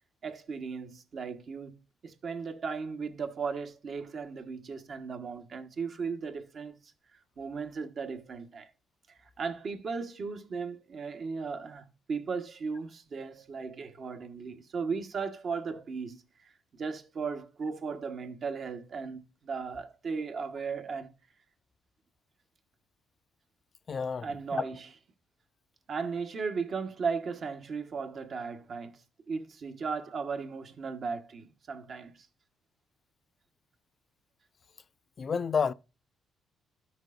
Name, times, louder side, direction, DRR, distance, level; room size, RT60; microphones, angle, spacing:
voice 1, 0.2-1.8 2.0-6.7 7.4-8.7 9.1-21.1 24.2-25.0 25.9-29.0 29.3-32.1, right 5 dB, 55° right, 1.2 m, -36 dB
voice 2, 23.9-24.6 35.2-35.7, left 6 dB, 45° left, 0.4 m, -30 dB
13.0 x 6.4 x 2.5 m
cardioid pair, 90°, 0 cm